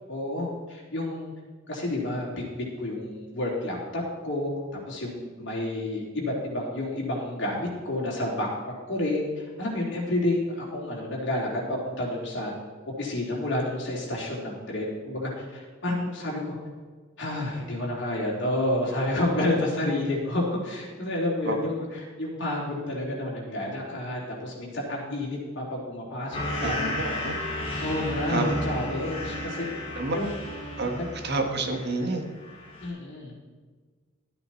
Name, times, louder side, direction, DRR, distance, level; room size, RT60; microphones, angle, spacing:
voice 1, 0.1-1.3 1.7-4.6 4.9-8.5 8.9-9.3 9.6-12.5 13.0-16.5 17.2-26.8 27.8-29.7 30.1-30.3 31.0-31.1 32.8-33.3, left 1 dB, 65° left, -4 dB, 3.6 m, -30 dB
sound 1, 26.3-32.1 32.4-32.9, left 1 dB, 30° left, 3.3 m, -33 dB
voice 2, 26.6-27.4 28.3-28.5 29.9-30.2 30.8-30.9 31.2-32.2, right 2 dB, 55° right, 4 dB, 1.5 m, -29 dB
13.0 x 8.8 x 4.5 m, 1.5 s
head